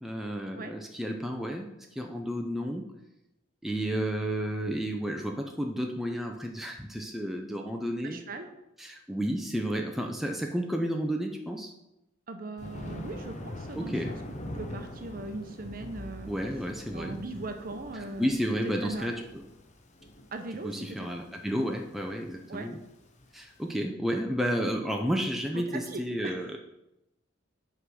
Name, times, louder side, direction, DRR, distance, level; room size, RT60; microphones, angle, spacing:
voice 1, 0.0-2.9 3.6-8.2 8.8-11.7 13.7-14.2 16.3-17.2 18.0-19.4 20.6-22.8 23.3-26.6, equal, ahead, 1 dB, 0.5 m, -32 dB
voice 2, 8.0-8.5 12.3-14.2 14.5-16.3 16.9-18.3 18.8-19.1 20.3-21.1 22.5-22.7 25.5-26.5, right 2 dB, 45° right, 6 dB, 0.7 m, -39 dB
Thunder, 12.6-23.7, left 1 dB, 35° left, 0.7 m, -43 dB
5.6 x 4.8 x 6.1 m, 0.88 s
head